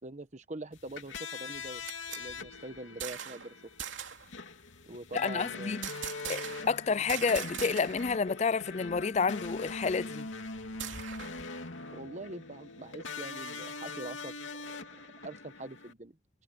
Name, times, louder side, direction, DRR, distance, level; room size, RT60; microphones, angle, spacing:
voice 1, 0.0-1.8 2.1-3.7 4.9-5.8 11.9-16.2, right 2 dB, 40° right, 1.1 m, -44 dB
sound 1, 0.7-15.9, left 3 dB, 90° left, 2.9 m, -42 dB
sound 2, 1.5-3.5 3.8-4.3 5.8-6.8 7.1-8.2 8.4-8.5 8.9-11.5, right 9 dB, 85° right, 2.8 m, -42 dB
voice 2, 5.1-5.8 6.3-10.3, left 5 dB, 35° left, 0.4 m, -30 dB
head